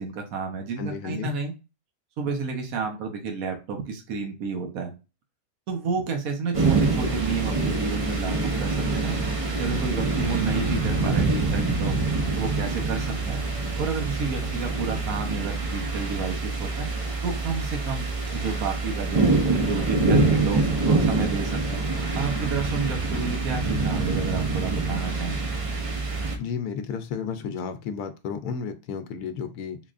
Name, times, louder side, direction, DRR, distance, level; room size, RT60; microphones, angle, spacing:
voice 1, 0.0-1.5 2.2-4.9 5.7-9.1 9.6-12.0 12.4-13.4 13.8-16.9 17.2-21.8 22.1-25.4, right 5 dB, 70° right, 3 dB, 1.3 m, -31 dB
voice 2, 0.8-1.3 26.4-29.8, left 6 dB, 85° left, 8 dB, 1.1 m, -32 dB
sound 1, 6.5-26.4, right 3 dB, 45° right, 0.4 m, -25 dB
3.9 x 2.9 x 2.4 m, 0.29 s
omnidirectional pair, 1.6 m